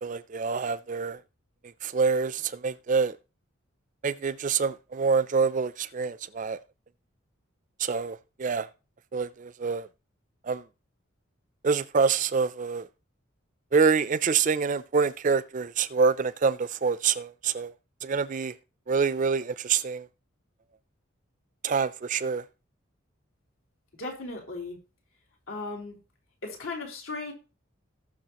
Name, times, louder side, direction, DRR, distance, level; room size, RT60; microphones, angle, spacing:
voice 1, 0.0-1.2 1.8-3.2 4.0-6.6 7.8-8.7 9.1-9.9 10.4-10.6 11.6-12.9 13.7-17.7 18.0-18.5 18.9-20.1 21.6-22.4, right 5 dB, 40° right, 0.4 m, -26 dB
voice 2, 24.0-24.8 25.5-26.0 26.4-27.3, left 3 dB, 80° left, 3.7 m, -36 dB
18.5 x 6.2 x 2.9 m
head